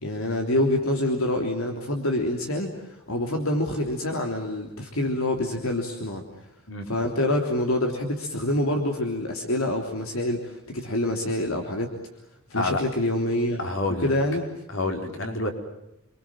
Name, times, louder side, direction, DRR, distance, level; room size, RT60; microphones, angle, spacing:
voice 1, 0.0-6.2 6.9-11.9 12.5-13.6 14.0-14.5, left 1 dB, 80° left, 3 dB, 3.4 m, -26 dB
voice 2, 13.6-14.1 14.7-15.5, left 2 dB, 60° left, 4 dB, 5.0 m, -28 dB
29.5 x 24.0 x 7.5 m, 0.88 s
head